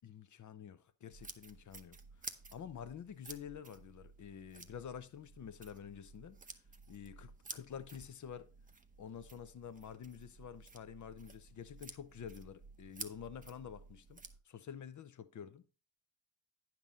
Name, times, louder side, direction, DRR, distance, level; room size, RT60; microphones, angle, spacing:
voice 1, 0.0-2.0 2.5-6.4 6.9-8.5 9.0-15.6, left 8 dB, 40° left, 0.8 m, -49 dB
sound 1, 1.1-14.4, right 4 dB, 20° right, 0.8 m, -53 dB
9.0 x 6.0 x 3.6 m
supercardioid pair, 70°, 44 cm